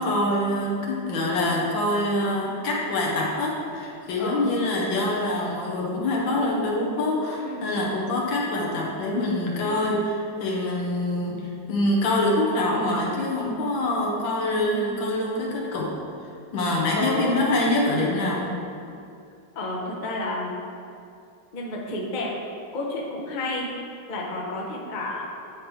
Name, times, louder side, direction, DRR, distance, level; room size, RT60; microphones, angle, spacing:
voice 1, 0.0-16.0 16.5-18.5, left 1 dB, 75° left, -2 dB, 1.7 m, -25 dB
voice 2, 7.4-7.7 9.6-9.9 14.7-14.8 16.9-17.4 19.5-20.6 21.5-22.3 22.7-23.7 24.1-25.2, left 2 dB, 45° left, -2 dB, 0.6 m, -31 dB
8.9 x 4.6 x 3.2 m, 2.5 s
omnidirectional pair, 2.2 m